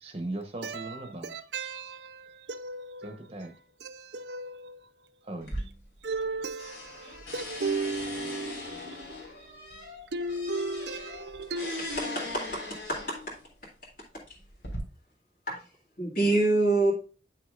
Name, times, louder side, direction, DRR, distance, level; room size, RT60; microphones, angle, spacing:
voice 1, 0.0-1.4 3.0-3.5 5.2-5.5, right 2 dB, 35° right, 0.8 m, -38 dB
voice 2, 0.6-0.9 1.2-3.1 3.8-4.8 6.0-7.1 7.3-8.8 10.1-12.1, right 3 dB, 70° right, 0.7 m, -35 dB
sound 1, 5.4-6.3 6.6-13.4 14.2-14.8, left 2 dB, 85° left, 3.2 m, -40 dB
voice 3, 11.8-12.6 12.9-13.2 15.5-15.6 16.0-16.9, right 2 dB, 45° left, 2.2 m, -26 dB
8.8 x 6.3 x 2.4 m
head